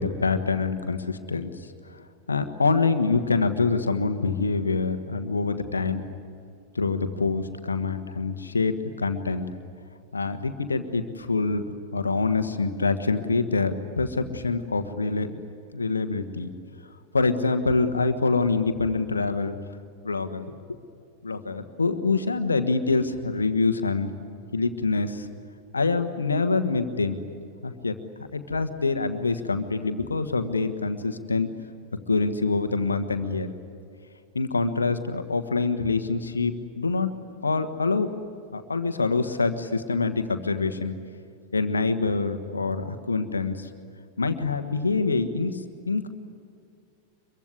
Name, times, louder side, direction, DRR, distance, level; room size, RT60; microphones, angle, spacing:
voice 1, 0.0-2.0 2.3-6.0 6.7-9.5 10.1-11.6 11.9-15.4 15.7-16.5 17.1-19.5 20.0-20.5 21.2-24.1 24.5-25.3 25.7-27.2 27.6-27.9 28.3-31.5 32.1-33.5 34.3-37.1 37.4-38.1 38.5-40.9 41.5-43.7 44.2-45.6 45.9-46.1, left 4 dB, 75° left, 9 dB, 1.4 m, -25 dB
25.0 x 23.5 x 9.7 m, 2.4 s
figure-of-eight pair, 90°, 0 cm